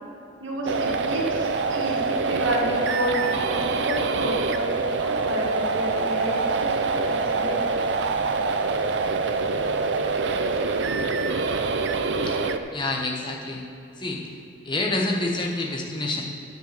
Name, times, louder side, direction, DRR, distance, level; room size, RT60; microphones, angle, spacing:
voice 1, 0.4-7.8 10.5-10.6, right 1 dB, 75° right, -2 dB, 2.2 m, -30 dB
sound 1, 0.7-12.6, right 4 dB, 60° right, 0.5 m, -25 dB
voice 2, 12.7-13.6 14.0-14.4 14.6-16.2, left 2 dB, 25° left, -1 dB, 1.2 m, -28 dB
10.0 x 5.3 x 7.7 m, 2.7 s
head